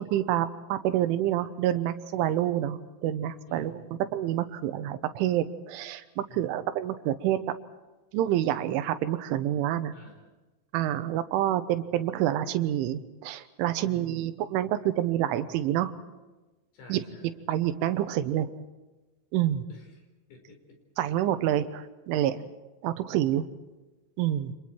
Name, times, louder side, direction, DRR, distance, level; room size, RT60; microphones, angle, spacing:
voice 1, 0.0-3.8 4.1-7.4 8.1-9.9 10.7-15.9 16.9-17.0 17.5-18.5 19.3-19.6 21.0-22.4 22.8-23.5 24.2-24.5, right 12 dB, 80° right, 11 dB, 3.4 m, -27 dB
voice 2, 3.5-4.0 6.3-6.7 9.9-10.3 13.8-14.3 16.7-17.3 19.7-20.0 20.3-20.8, left 2 dB, 60° left, 3 dB, 6.5 m, -50 dB
29.5 x 26.5 x 4.6 m, 1.1 s
omnidirectional pair, 5.8 m